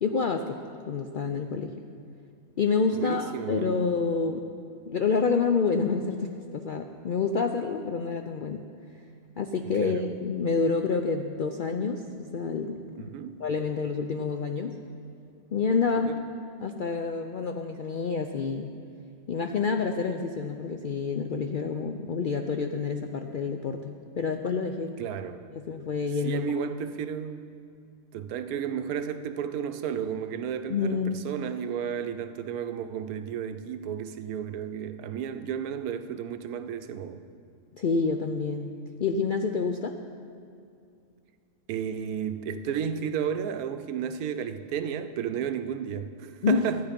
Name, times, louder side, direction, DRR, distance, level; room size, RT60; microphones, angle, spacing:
voice 1, 0.0-0.6 0.9-1.8 2.6-4.4 4.9-8.6 9.4-12.8 13.4-14.8 15.5-16.1 16.6-18.7 19.3-24.9 25.5-26.5 30.7-31.2 37.8-40.0 46.4-46.7, left 5 dB, 70° left, 5 dB, 0.4 m, -28 dB
voice 2, 2.9-3.8 9.7-10.0 13.0-13.4 16.1-16.2 25.0-25.4 26.2-27.5 28.1-37.2 41.7-46.9, right 8 dB, 90° right, 10 dB, 1.1 m, -32 dB
13.5 x 9.5 x 5.2 m, 2.5 s
omnidirectional pair, 1.5 m